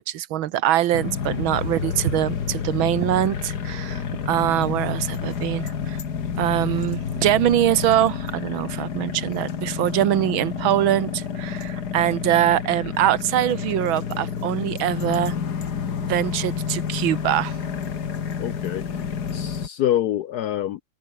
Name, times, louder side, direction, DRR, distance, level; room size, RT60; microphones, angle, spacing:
voice 1, 0.0-6.0 6.4-15.3 16.0-17.6, right 12 dB, 85° right, 1.7 m, -23 dB
sound 1, 0.9-19.7, left 7 dB, 55° left, 2.2 m, -29 dB
voice 2, 18.4-19.0 19.3-20.8, left 12 dB, 70° left, 0.9 m, -26 dB
omnidirectional pair, 2.2 m